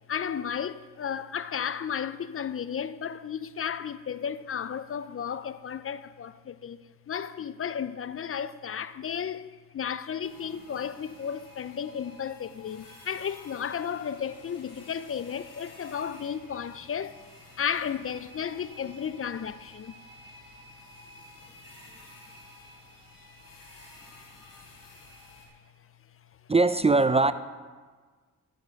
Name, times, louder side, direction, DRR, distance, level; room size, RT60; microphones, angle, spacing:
voice 1, 0.1-6.8 7.1-17.2 17.6-20.0, left 7 dB, 45° left, 0.4 m, -33 dB
sound 1, 10.2-25.5, left 1 dB, 90° left, 2.4 m, -51 dB
voice 2, 26.5-27.3, right 3 dB, 20° right, 0.3 m, -21 dB
12.0 x 5.8 x 5.2 m
cardioid pair, 55°, 32 cm